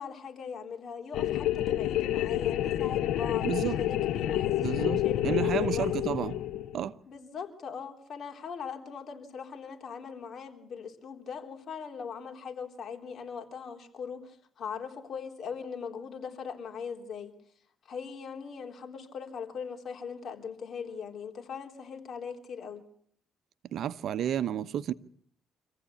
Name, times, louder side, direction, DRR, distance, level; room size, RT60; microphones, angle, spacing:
voice 1, 0.0-6.1 7.1-17.3 17.9-22.9, left 6 dB, 60° left, 3.6 m, -40 dB
sound 1, 1.1-6.9, left 12 dB, 85° left, 1.1 m, -29 dB
voice 2, 3.4-3.8 4.6-6.3 6.7-6.9 23.7-24.9, right 10 dB, 70° right, 0.9 m, -31 dB
26.0 x 15.5 x 8.5 m
cardioid pair, 90°, 0 cm